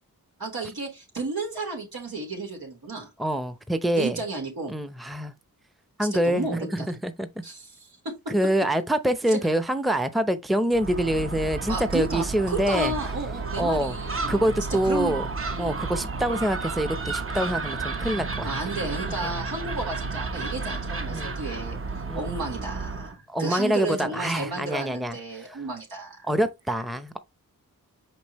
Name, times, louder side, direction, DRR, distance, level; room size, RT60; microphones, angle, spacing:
voice 1, 0.4-3.1 3.9-4.7 6.1-6.9 7.4-8.1 9.3-9.4 11.7-14.5 14.8-15.8 18.4-26.3, right 3 dB, 80° right, 3.6 m, -33 dB
voice 2, 3.2-4.2 4.7-5.3 6.0-7.3 8.3-12.9 13.5-14.0 14.3-15.3 15.6-18.5 19.0-19.3 21.1-21.3 22.1-22.3 23.3-25.6 26.2-27.2, right 1 dB, ahead, 0.7 m, -26 dB
Gull seagull, 10.7-23.2, right 3 dB, 35° right, 1.0 m, -32 dB
6.0 x 5.3 x 3.1 m
cardioid pair, 50°, 36 cm